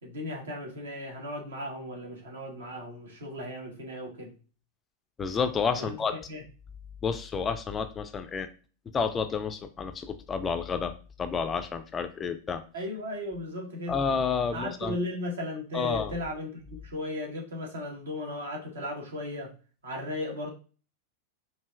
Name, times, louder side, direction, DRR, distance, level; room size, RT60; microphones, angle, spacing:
voice 1, 0.0-4.4 5.7-5.9 6.3-6.4 12.7-14.0 14.5-19.5 19.8-20.5, left 1 dB, 65° right, 1.4 m, -36 dB
voice 2, 5.2-6.1 7.0-8.5 8.9-10.9 11.2-12.6 13.9-15.0 15.7-16.1, left 5 dB, 20° left, 0.4 m, -30 dB
4.8 x 2.6 x 2.3 m
figure-of-eight pair, 90°, 0 cm